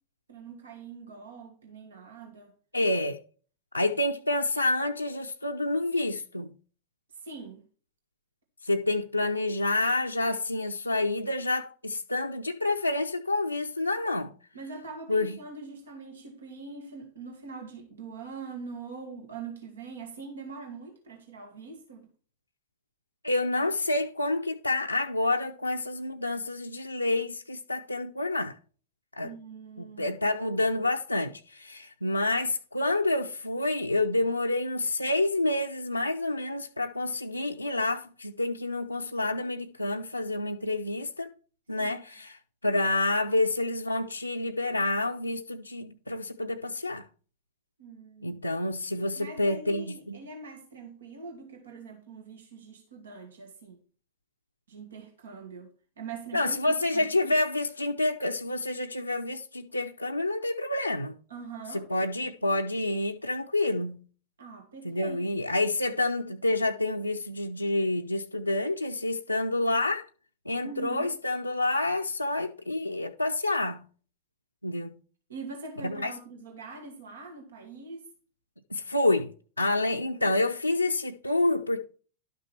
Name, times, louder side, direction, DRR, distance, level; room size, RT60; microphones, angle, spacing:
voice 1, 0.3-2.5 7.1-7.6 14.5-22.1 29.2-30.2 41.8-42.0 47.8-48.4 49.2-53.8 54.7-55.7 56.0-57.4 61.3-61.9 64.4-65.2 70.6-71.2 75.3-78.1, right 4 dB, 65° right, 2.2 m, -43 dB
voice 2, 2.7-3.2 3.7-6.5 8.6-14.3 15.1-15.4 23.2-28.6 29.1-29.3 29.8-41.3 41.7-42.4 42.6-47.0 48.2-50.2 56.3-61.2 61.7-64.0 64.8-70.0 70.5-73.8 74.6-74.9 75.8-76.1 78.7-79.3 79.6-81.8, left 2 dB, 85° left, 0.6 m, -28 dB
12.0 x 6.1 x 4.4 m
figure-of-eight pair, 90°, 0 cm